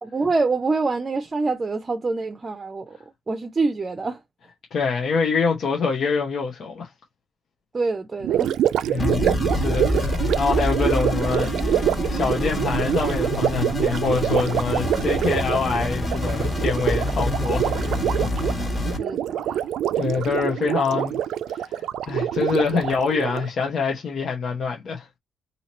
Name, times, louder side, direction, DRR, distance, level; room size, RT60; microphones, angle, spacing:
voice 1, 0.0-3.0 3.3-4.2 7.7-8.6 19.0-19.7, right 3 dB, 30° right, 0.6 m, -26 dB
voice 2, 4.7-6.9 8.9-17.7 18.6-18.8 19.9-21.2 21.5-25.1, left 5 dB, 60° left, 0.8 m, -25 dB
Gurgling, 8.2-23.5, right 11 dB, 75° right, 0.3 m, -25 dB
sound 1, 9.0-19.0, left 1 dB, 30° left, 1.4 m, -26 dB
2.9 x 2.8 x 4.1 m
cardioid pair, 90°, 0 cm